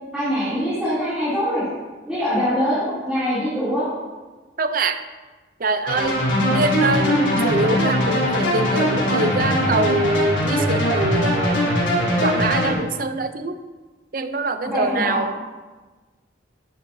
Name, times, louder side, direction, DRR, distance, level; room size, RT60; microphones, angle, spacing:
voice 1, 0.1-1.6 2.0-3.9 14.6-15.4, equal, 5° right, -13 dB, 2.9 m, -23 dB
voice 2, 4.6-5.0 5.6-6.2 6.5-11.7 12.2-13.6 14.1-15.4, right 2 dB, 45° right, 9 dB, 0.5 m, -24 dB
sound 1, 5.9-12.7, equal, 75° left, 3.3 m, -21 dB
11.0 x 9.1 x 2.7 m, 1.3 s
head